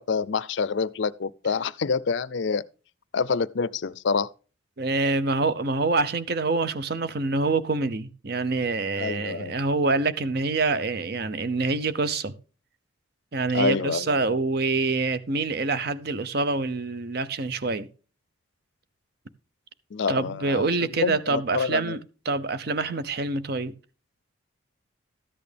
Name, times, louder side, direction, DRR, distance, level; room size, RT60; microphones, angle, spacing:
voice 1, 0.0-2.6 3.1-4.3 9.0-9.6 13.5-14.2 19.9-22.0, left 5 dB, 65° left, 0.5 m, -27 dB
voice 2, 4.8-12.3 13.3-17.9 20.1-22.0 22.3-23.7, right 3 dB, 50° right, 0.7 m, -26 dB
13.5 x 8.7 x 3.4 m
head